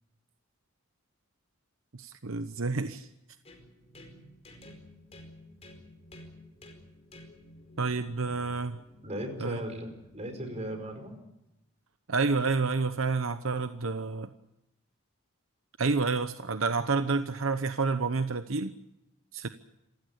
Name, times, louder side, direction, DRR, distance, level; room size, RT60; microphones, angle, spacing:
voice 1, 1.9-3.1 7.8-8.8 9.4-9.6 12.1-14.3 15.8-18.7 19.3-19.5, right 4 dB, 75° right, 10 dB, 0.9 m, -29 dB
sound 1, 3.4-11.2, left 1 dB, 30° left, 4.8 m, -53 dB
voice 2, 9.0-11.1, equal, 30° right, 6 dB, 5.2 m, -37 dB
27.5 x 16.0 x 8.4 m, 0.90 s
head